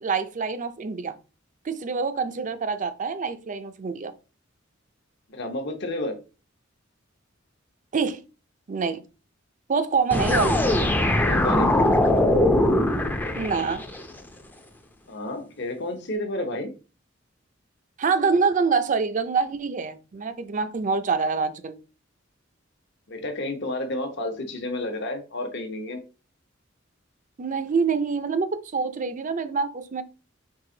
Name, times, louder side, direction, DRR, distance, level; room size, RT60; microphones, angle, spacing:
voice 1, 0.0-1.2 1.6-4.1 7.9-8.2 8.7-9.0 9.7-10.6 13.4-13.8 18.0-21.7 27.4-30.0, right 5 dB, 40° right, 0.5 m, -25 dB
voice 2, 5.3-6.2 11.2-11.9 15.1-16.7 23.1-26.0, left 1 dB, 60° left, 0.9 m, -31 dB
sound 1, 10.1-14.0, left 1 dB, 10° left, 0.5 m, -21 dB
4.7 x 2.5 x 3.8 m
head